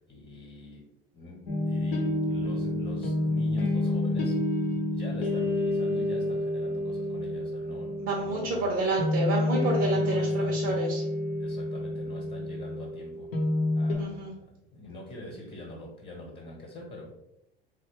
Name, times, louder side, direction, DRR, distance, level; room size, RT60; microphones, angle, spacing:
voice 1, 0.1-0.9 1.1-4.5 4.9-8.9 9.8-10.7 11.4-13.3 13.7-17.1, left 2 dB, 35° left, -2 dB, 1.1 m, -44 dB
sound 1, 1.5-13.9, left 1 dB, 70° left, 0.8 m, -29 dB
voice 2, 8.0-11.0 14.0-14.3, right 2 dB, 45° right, -2 dB, 0.8 m, -29 dB
3.1 x 2.5 x 2.9 m, 0.81 s
hypercardioid pair, 75°, 29 cm